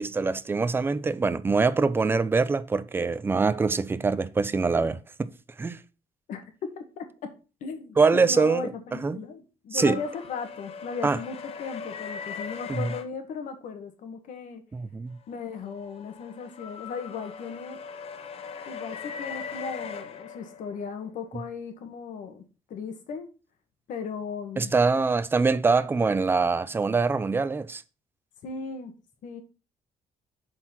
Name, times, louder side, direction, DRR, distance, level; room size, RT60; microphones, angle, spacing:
voice 1, 0.0-5.3 5.6-5.8 8.0-8.7 9.0-9.2 9.7-10.0 11.0-11.2 12.7-12.9 14.7-15.2 24.6-27.8, right 4 dB, 15° right, 0.5 m, -24 dB
voice 2, 6.8-7.3 7.6-14.6 15.3-17.8 18.7-22.4 22.7-23.3 23.9-24.7 28.4-28.9 29.2-29.4, left 5 dB, 70° left, 1.8 m, -37 dB
sound 1, 9.8-13.0 15.4-20.9, left 6 dB, 50° left, 1.0 m, -40 dB
7.6 x 4.6 x 5.9 m
cardioid pair, 170°, 13 cm